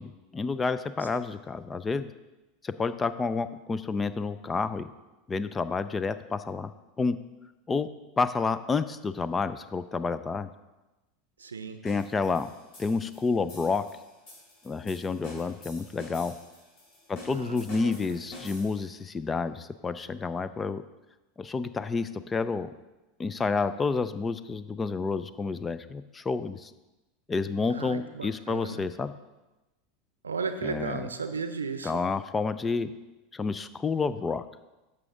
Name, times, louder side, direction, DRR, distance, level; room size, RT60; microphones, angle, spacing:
voice 1, 0.0-2.1 2.6-4.9 5.3-6.7 7.0-7.2 7.7-7.9 8.2-10.5 11.8-12.5 12.8-13.8 14.6-16.3 17.1-20.8 21.4-22.7 23.2-26.7 27.3-29.1 30.6-31.1 31.8-32.9 33.3-34.4, left 4 dB, 20° left, 13 dB, 0.4 m, -29 dB
voice 2, 11.4-11.8 17.3-18.2 27.7-28.9 30.2-32.0, right 5 dB, 80° right, 9 dB, 0.7 m, -35 dB
sound 1, 11.9-19.0, left 1 dB, 55° left, 3.5 m, -48 dB
10.5 x 6.9 x 3.7 m, 1.1 s
figure-of-eight pair, 80°, 0 cm